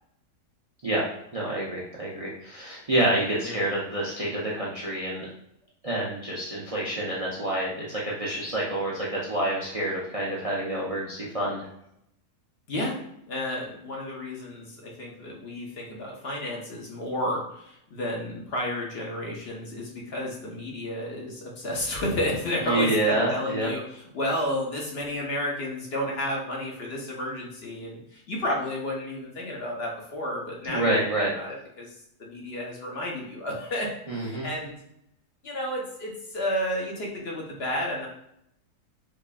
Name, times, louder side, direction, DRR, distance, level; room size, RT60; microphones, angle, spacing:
voice 1, 1.3-5.3 5.8-11.7 22.6-23.7 30.6-31.3 34.1-34.5, right 1 dB, 65° right, -6 dB, 0.3 m, -28 dB
voice 2, 12.7-13.0 13.3-30.9 31.3-34.8 35.4-38.1, left 1 dB, 50° left, -1 dB, 0.8 m, -31 dB
4.8 x 2.5 x 2.3 m, 0.75 s
omnidirectional pair, 1.7 m